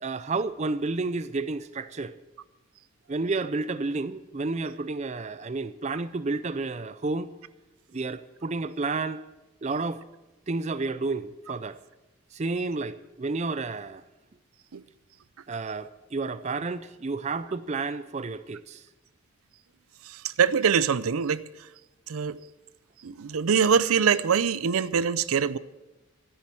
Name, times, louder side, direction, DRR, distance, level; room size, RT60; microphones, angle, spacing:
voice 1, 0.0-2.2 3.1-7.3 7.9-9.2 9.6-10.0 10.5-11.8 12.3-14.0 15.5-18.8, right 3 dB, 30° right, 0.4 m, -31 dB
voice 2, 20.4-21.4 22.1-22.4 23.0-25.6, right 6 dB, 80° right, 0.5 m, -23 dB
13.0 x 10.5 x 7.6 m
head